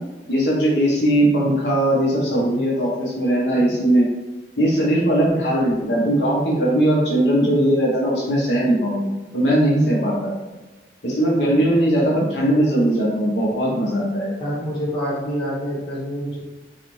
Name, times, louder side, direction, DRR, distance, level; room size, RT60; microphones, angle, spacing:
voice 1, 0.3-4.0 4.6-10.3 11.0-14.4, right 1 dB, 75° left, -4 dB, 0.9 m, -19 dB
voice 2, 14.4-16.4, equal, 25° left, -7 dB, 1.1 m, -26 dB
4.1 x 2.4 x 3.1 m, 1.2 s
head